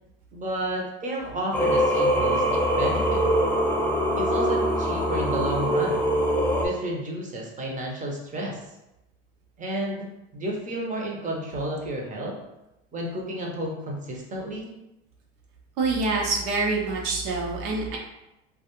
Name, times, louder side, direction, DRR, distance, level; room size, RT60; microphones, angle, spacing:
voice 1, 0.3-3.2 4.2-6.1 6.6-8.6 9.6-12.4 12.9-14.7, right 1 dB, 25° right, -1 dB, 0.7 m, -31 dB
Singing, 1.5-6.7, equal, 5° left, 0.4 m, -23 dB
voice 2, 15.8-18.0, right 3 dB, 70° right, 0 dB, 0.8 m, -26 dB
2.3 x 2.3 x 2.9 m, 0.92 s
hypercardioid pair, 95°, 29 cm